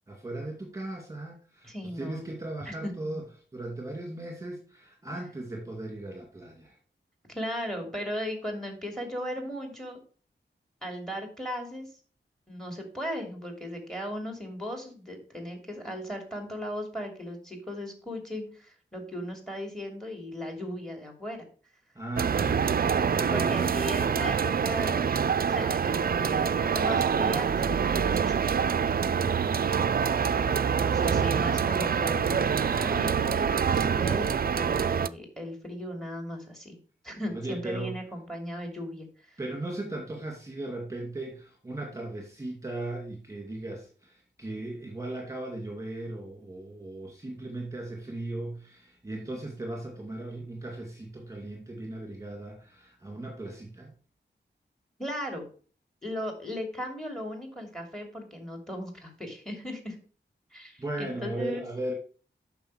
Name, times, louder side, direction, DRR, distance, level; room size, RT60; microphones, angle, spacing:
voice 1, 0.1-3.2 3.5-6.8 21.9-23.5 37.3-38.0 39.4-53.9 60.8-61.9, right 2 dB, 15° right, 0 dB, 2.3 m, -37 dB
voice 2, 1.6-2.2 2.7-3.2 7.3-10.0 10.8-11.9 12.5-21.4 23.3-25.2 25.5-28.4 30.3-36.8 37.0-39.4 55.0-55.5 56.0-60.0 60.5-61.6, equal, ahead, 4 dB, 2.7 m, -37 dB
sound 1, 22.2-35.1, right 7 dB, 50° right, 0.4 m, -26 dB
9.1 x 6.2 x 4.8 m, 0.40 s
wide cardioid pair, 90°, 19 cm